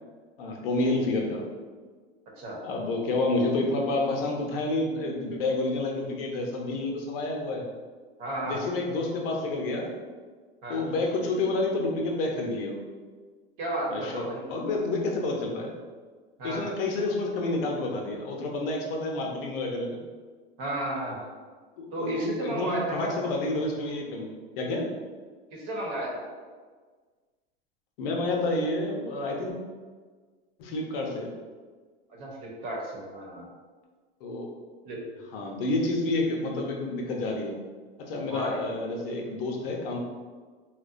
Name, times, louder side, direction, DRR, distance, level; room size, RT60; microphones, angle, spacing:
voice 1, 0.4-1.4 2.6-7.6 8.4-9.9 10.7-12.8 13.9-14.2 14.5-15.7 16.4-20.0 21.8-24.3 24.6-24.9 28.0-29.5 30.6-31.3 34.2-34.5 35.3-37.5 38.0-40.0, left 2 dB, 75° left, 0 dB, 0.7 m, -29 dB
voice 2, 8.2-8.7 10.6-10.8 13.6-14.4 16.4-16.6 20.6-21.2 21.9-23.2 25.5-26.3 32.2-33.5 34.8-35.0 38.3-38.6, right 1 dB, 60° right, -3 dB, 1.0 m, -33 dB
2.8 x 2.2 x 2.5 m, 1.5 s
supercardioid pair, 110°, 29 cm